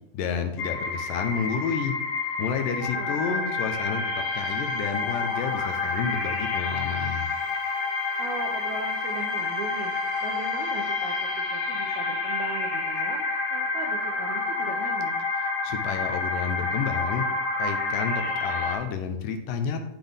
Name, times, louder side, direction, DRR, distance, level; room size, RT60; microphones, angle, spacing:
voice 1, 0.1-1.9 2.4-7.3 15.6-17.3 17.6-19.8, left 7 dB, 80° left, 6 dB, 2.2 m, -30 dB
sound 1, 0.6-18.7, left 3 dB, 60° left, 1.7 m, -29 dB
voice 2, 2.9-3.6 8.2-15.2, right 4 dB, 80° right, 2 dB, 1.7 m, -38 dB
12.0 x 4.0 x 3.5 m, 0.86 s
omnidirectional pair, 4.0 m